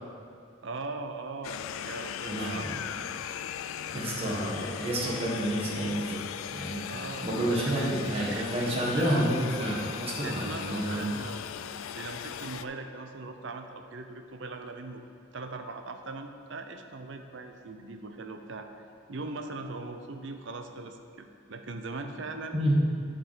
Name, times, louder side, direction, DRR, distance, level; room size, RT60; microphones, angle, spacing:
voice 1, 0.6-2.7 3.5-3.6 6.9-7.8 8.1-9.2 10.2-11.4 11.9-15.0 15.3-18.7 19.1-22.5, right 3 dB, 60° right, 6 dB, 0.6 m, -40 dB
sound 1, 1.4-12.6, left 9 dB, 80° left, 0.3 m, -38 dB
voice 2, 2.2-2.7 3.9-6.2 6.5-6.9 7.2-11.1 22.5-22.8, right 1 dB, 30° right, -5 dB, 1.5 m, -29 dB
11.0 x 5.2 x 4.9 m, 2.4 s
head